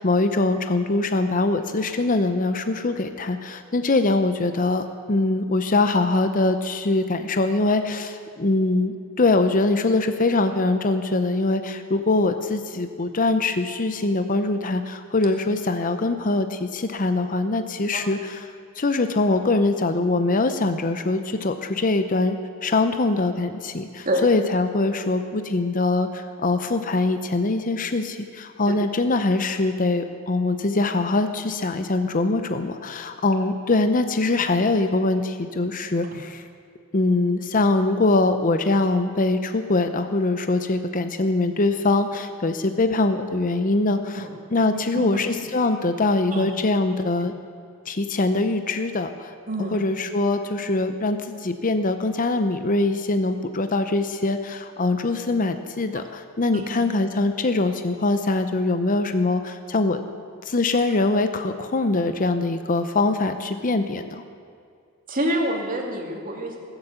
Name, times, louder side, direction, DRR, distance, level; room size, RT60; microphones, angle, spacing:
voice 1, 0.0-18.4 18.8-36.4 36.9-44.2 44.5-47.3 47.9-49.3 49.7-60.0 60.5-64.2, left 2 dB, 40° left, 8 dB, 0.7 m, -23 dB
voice 2, 49.5-49.8 55.9-56.0 56.5-56.6 65.1-66.6, right 1 dB, 40° right, 1 dB, 2.5 m, -26 dB
20.0 x 8.1 x 8.1 m, 2.3 s
head